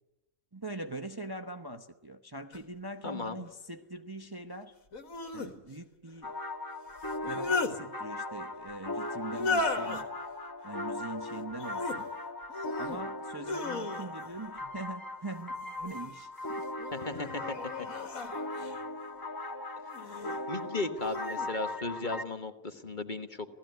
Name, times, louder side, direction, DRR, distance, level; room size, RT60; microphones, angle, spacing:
voice 1, 0.5-4.7 5.3-6.3 7.3-10.1 10.6-12.1 12.8-16.6 18.2-18.4 20.0-20.3, right 2 dB, 20° right, 6 dB, 0.9 m, -42 dB
sound 1, 2.5-2.6 4.9-5.5 7.0-7.8 9.3-10.0 11.5-12.0 12.5-13.0 13.4-14.3 15.5-16.2 16.8-18.8 19.9-20.4 21.0-21.5, left 3 dB, 80° left, 2.3 m, -35 dB
voice 2, 3.0-3.4 16.9-17.5 20.5-23.5, left 3 dB, 35° left, 8 dB, 1.5 m, -36 dB
sound 2, 6.2-22.2, left 2 dB, 15° left, 1.4 m, -39 dB
28.5 x 18.0 x 9.3 m, 0.94 s
omnidirectional pair, 1.4 m